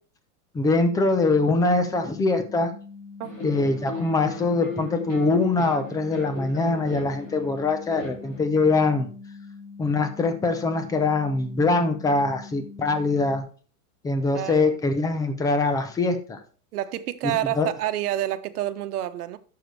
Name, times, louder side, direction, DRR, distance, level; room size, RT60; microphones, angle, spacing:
voice 1, 0.5-2.7 3.4-9.1 9.8-13.5 14.0-16.4 17.6-17.7, left 3 dB, 10° left, 0.7 m, -23 dB
sound 1, 0.7-13.4, left 4 dB, 75° left, 4.5 m, -43 dB
sound 2, 3.2-8.5, left 2 dB, 35° left, 3.3 m, -37 dB
voice 2, 14.3-14.8 16.7-19.4, right 13 dB, 70° right, 1.1 m, -28 dB
12.0 x 6.7 x 3.4 m
supercardioid pair, 155°, 46 cm